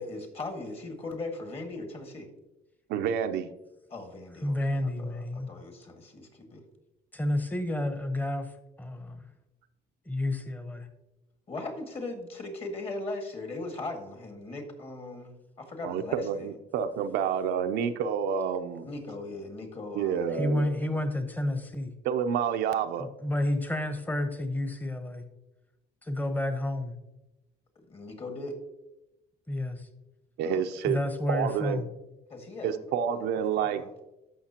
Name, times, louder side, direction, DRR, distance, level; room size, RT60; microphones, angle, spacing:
voice 1, 0.0-2.3 3.9-6.6 11.5-16.5 18.8-20.5 27.9-28.6 30.4-30.6 32.3-32.8 33.1-33.3 33.6-33.9, left 2 dB, 35° left, 4 dB, 1.9 m, -39 dB
voice 2, 2.9-3.5 15.8-18.9 20.0-20.9 22.0-23.1 30.4-31.0 31.3-31.8 32.6-33.8, right 8 dB, 80° right, 7 dB, 0.7 m, -29 dB
voice 3, 4.4-5.5 7.1-8.5 8.8-9.2 10.0-10.9 20.3-21.9 23.0-25.2 26.1-26.9 29.5-29.9 30.8-31.9, left 1 dB, 10° left, 8 dB, 1.0 m, -30 dB
13.0 x 5.9 x 2.9 m, 0.93 s
cardioid pair, 110°, 17 cm